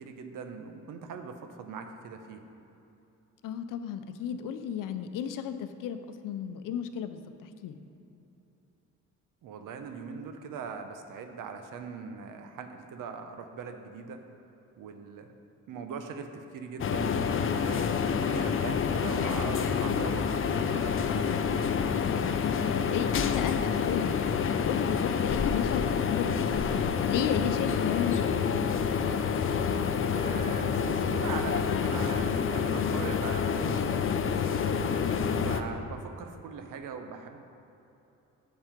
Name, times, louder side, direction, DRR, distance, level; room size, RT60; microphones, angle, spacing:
voice 1, 0.0-2.4 9.4-14.2 14.8-15.4 15.7-21.4 30.1-34.6 35.2-37.4, right 5 dB, 90° right, 6 dB, 0.8 m, -41 dB
voice 2, 3.4-6.0 6.2-7.8 22.0-26.5 27.1-28.4, left 8 dB, 90° left, 9 dB, 0.6 m, -34 dB
sound 1, 16.8-35.6, left 6 dB, 40° left, 0.5 m, -28 dB
7.7 x 7.3 x 5.1 m, 3.0 s
cardioid pair, 120°, 31 cm